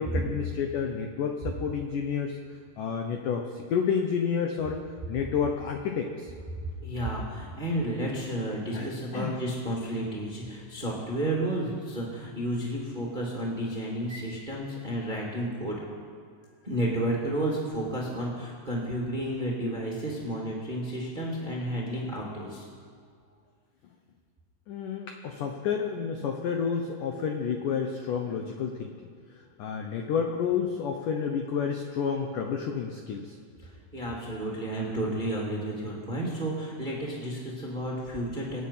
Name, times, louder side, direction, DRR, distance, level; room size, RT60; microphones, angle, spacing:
voice 1, 0.0-2.4 2.8-4.8 5.1-6.3 8.7-9.4 24.7-29.1 29.6-33.4, left 6 dB, 85° left, 4 dB, 1.8 m, -30 dB
voice 2, 6.8-15.8 16.6-22.6 33.6-38.6, right 1 dB, 20° right, -3 dB, 1.3 m, -32 dB
26.5 x 8.9 x 5.7 m, 2.2 s
omnidirectional pair, 5.1 m